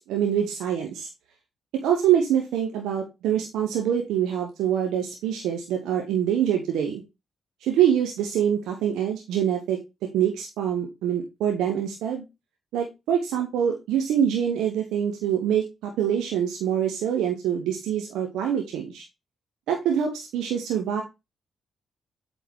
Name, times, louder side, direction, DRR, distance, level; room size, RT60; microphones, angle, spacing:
voice 1, 0.1-1.1 1.8-7.0 7.6-9.8 10.1-12.2 12.7-19.0 19.7-21.0, right 9 dB, 75° right, 2 dB, 1.1 m, -25 dB
8.2 x 4.1 x 3.5 m, 0.23 s
hypercardioid pair, 40°, 0 cm